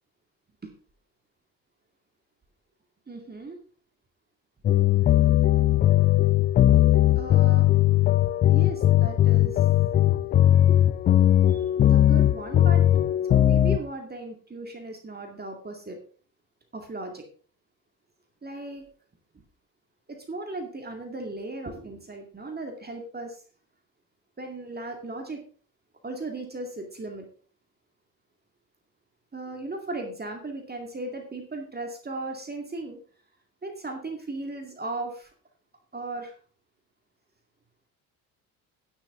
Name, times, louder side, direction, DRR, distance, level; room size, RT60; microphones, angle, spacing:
voice 1, 3.1-3.6 7.2-7.7 8.5-9.7 11.5-12.8 13.3-16.0 16.7-17.2 18.4-18.8 20.1-23.4 24.4-25.4 26.0-27.3 29.3-33.0 33.6-35.3 35.9-36.3, right 2 dB, 20° right, 3 dB, 2.2 m, -36 dB
sound 1, 4.6-13.8, left 12 dB, 20° left, 0.3 m, -19 dB
10.5 x 10.0 x 3.7 m, 0.43 s
figure-of-eight pair, 55°, 50 cm